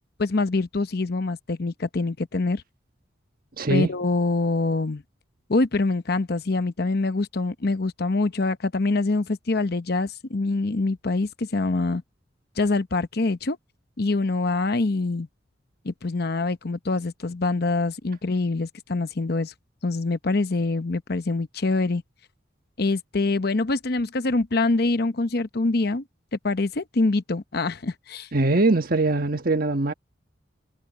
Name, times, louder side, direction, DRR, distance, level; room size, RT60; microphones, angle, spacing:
voice 1, 0.2-2.6 3.7-5.0 5.5-12.0 12.6-13.6 14.0-15.3 15.8-19.5 19.8-22.0 22.8-26.0 26.4-28.3, left 3 dB, 55° left, 0.8 m, -25 dB
voice 2, 3.6-3.9 28.3-29.9, right 2 dB, 50° right, 1.4 m, -22 dB
head